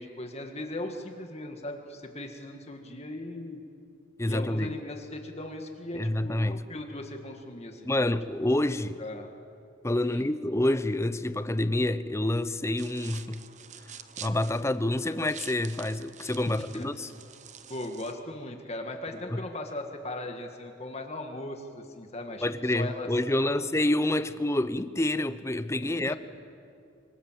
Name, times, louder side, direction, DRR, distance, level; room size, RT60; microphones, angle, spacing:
voice 1, 0.0-3.6 4.3-8.1 9.0-9.3 10.0-10.3 16.7-16.9 17.7-23.7 26.0-26.2, left 1 dB, 30° left, 1.9 m, -38 dB
voice 2, 4.2-4.7 5.9-6.6 7.8-9.0 9.8-13.4 14.2-17.1 19.3-19.4 22.4-26.1, left 1 dB, 15° left, 0.7 m, -28 dB
sound 1, 12.8-18.1, right 8 dB, 35° right, 0.9 m, -47 dB
25.5 x 25.0 x 7.6 m
head